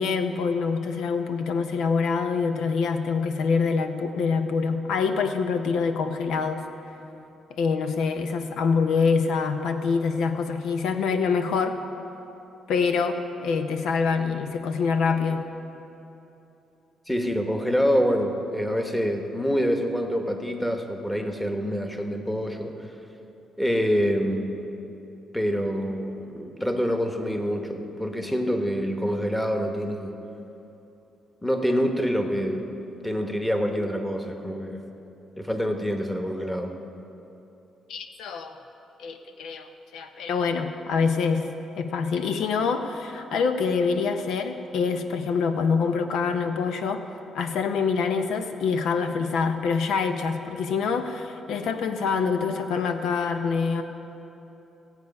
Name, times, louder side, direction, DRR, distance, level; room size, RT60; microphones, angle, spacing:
voice 1, 0.0-6.7 7.6-11.8 12.7-15.4 37.9-38.6 39.0-41.5 41.8-47.0 47.3-53.8, left 5 dB, 80° left, 7 dB, 0.7 m, -25 dB
voice 2, 17.1-22.9 23.6-24.7 25.3-30.1 31.4-32.7 33.0-34.8 35.4-36.7, equal, 5° left, 4 dB, 1.2 m, -26 dB
17.0 x 8.1 x 5.4 m, 3.0 s
cardioid pair, 90°, 0 cm